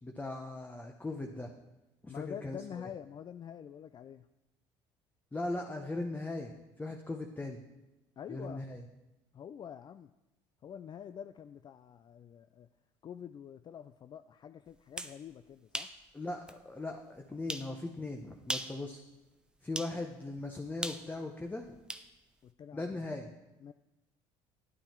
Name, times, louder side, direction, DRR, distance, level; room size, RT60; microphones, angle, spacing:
voice 1, 0.0-1.5 2.0-2.9 5.3-7.6 8.3-8.8 16.1-19.0 19.6-21.8 22.7-23.3, left 2 dB, 15° left, 3 dB, 0.9 m, -39 dB
voice 2, 2.1-4.3 8.2-8.7 9.3-10.1 10.6-12.7 13.0-15.9 22.4-23.0 23.6-23.7, left 8 dB, 40° left, 11 dB, 0.3 m, -46 dB
sound 1, 14.7-15.2 15.7-16.0 16.5-16.6 17.5-17.7 18.4-18.8 19.7-20.0 20.8-22.1, right 1 dB, 5° right, 0.7 m, -38 dB
10.0 x 8.8 x 4.5 m, 0.99 s
supercardioid pair, 80°, 12 cm